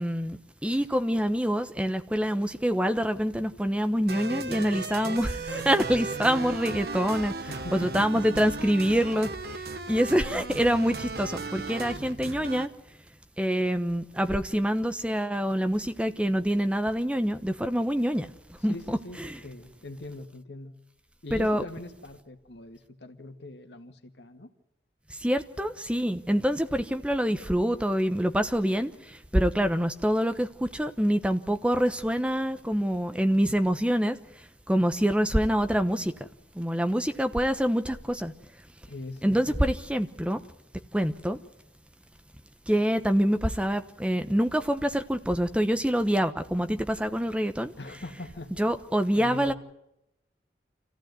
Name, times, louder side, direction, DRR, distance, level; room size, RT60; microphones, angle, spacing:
voice 1, 0.0-9.3 9.9-12.7 13.4-18.3 18.6-19.4 21.3-21.6 25.2-34.2 34.7-36.1 36.5-38.3 39.2-40.4 40.9-41.4 42.7-47.7 48.6-49.5, equal, 5° right, 1.0 m, -26 dB
sound 1, 4.1-12.7, right 3 dB, 60° right, 1.2 m, -36 dB
voice 2, 7.5-8.4 18.6-20.8 21.2-24.5 38.9-39.6 47.8-48.5 49.1-49.5, left 2 dB, 75° left, 1.9 m, -41 dB
26.5 x 15.5 x 9.5 m
head